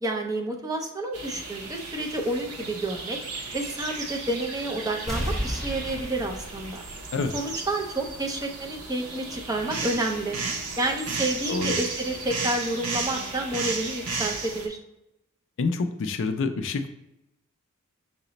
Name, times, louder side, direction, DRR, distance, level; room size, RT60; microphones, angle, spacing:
voice 1, 0.0-3.2 3.5-6.8 7.3-10.4 10.8-14.8, right 1 dB, 15° right, 2 dB, 0.5 m, -29 dB
sound 1, 1.1-14.7, right 3 dB, 90° right, 0.6 m, -34 dB
sound 2, 5.1-7.7 8.0-8.1, equal, ahead, 0.8 m, -33 dB
voice 2, 15.6-16.9, left 3 dB, 60° left, 7 dB, 0.4 m, -27 dB
5.7 x 2.0 x 3.9 m, 0.89 s
head